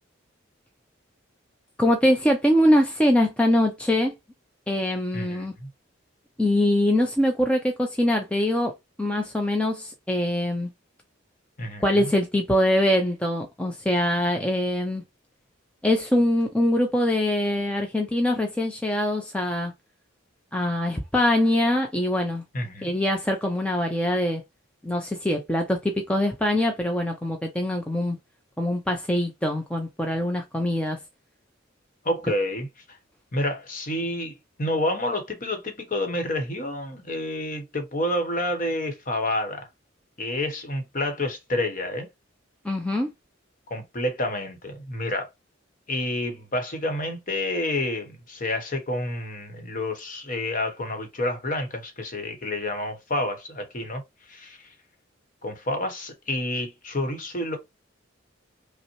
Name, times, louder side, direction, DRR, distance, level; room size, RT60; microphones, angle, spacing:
voice 1, 1.8-4.1 4.7-5.5 6.4-8.7 9.0-10.7 11.8-15.0 15.8-19.7 20.5-22.4 22.8-24.4 24.8-25.8 26.1-28.2 28.6-31.0 42.6-43.1, left 1 dB, 5° left, 0.4 m, -23 dB
voice 2, 5.1-5.7 11.6-12.1 22.5-22.9 32.0-33.0 33.3-39.7 40.2-42.1 43.7-45.3 45.9-54.0 54.3-54.7 55.4-57.6, left 1 dB, 40° left, 0.9 m, -29 dB
5.3 x 2.0 x 3.0 m
head